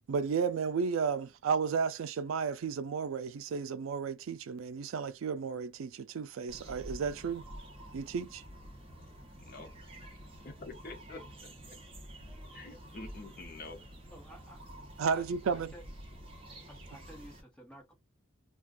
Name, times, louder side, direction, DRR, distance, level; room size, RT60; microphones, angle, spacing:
voice 1, 0.1-7.4 7.9-8.4 15.0-15.7, right 5 dB, 80° right, 0.4 m, -33 dB
sound 1, 6.5-17.4, equal, 25° right, 0.7 m, -49 dB
voice 2, 9.4-10.2 10.4-11.5 12.5-13.8, left 3 dB, 45° left, 0.7 m, -47 dB
voice 3, 14.1-14.6 15.1-15.8 16.7-17.9, right 1 dB, 5° left, 1.1 m, -53 dB
2.4 x 2.3 x 3.5 m
head